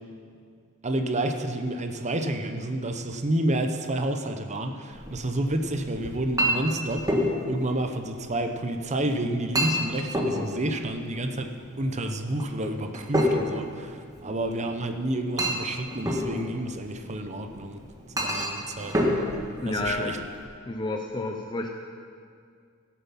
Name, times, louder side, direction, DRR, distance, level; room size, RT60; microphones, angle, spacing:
voice 1, 0.8-7.1 7.5-11.5 11.8-17.8 18.2-19.0 19.7-20.2, right 1 dB, 35° right, 6 dB, 0.8 m, -29 dB
Chink clink, 4.9-20.4, equal, 15° right, 1.5 m, -30 dB
voice 2, 19.6-20.2 20.7-21.7, left 2 dB, 20° left, 2 dB, 0.6 m, -30 dB
17.0 x 7.1 x 5.8 m, 2.2 s
head